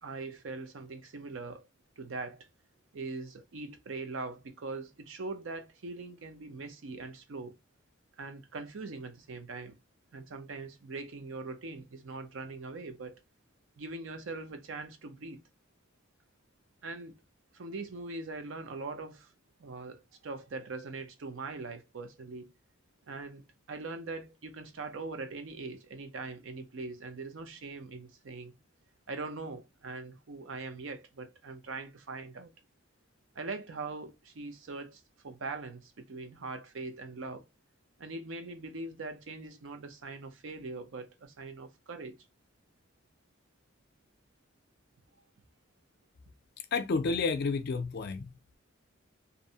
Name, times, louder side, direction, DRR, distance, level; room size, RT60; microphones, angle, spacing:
voice 1, 0.0-1.7 2.0-2.5 2.9-7.6 8.2-9.7 10.1-13.2 13.8-15.4 16.8-17.1 17.5-19.3 19.6-22.5 23.1-23.4 23.7-28.6 29.1-32.5 33.3-37.5 38.0-42.2, right 3 dB, 65° right, 0.5 m, -41 dB
voice 2, 46.7-48.3, left 4 dB, 50° left, 0.4 m, -30 dB
2.6 x 2.0 x 2.7 m
head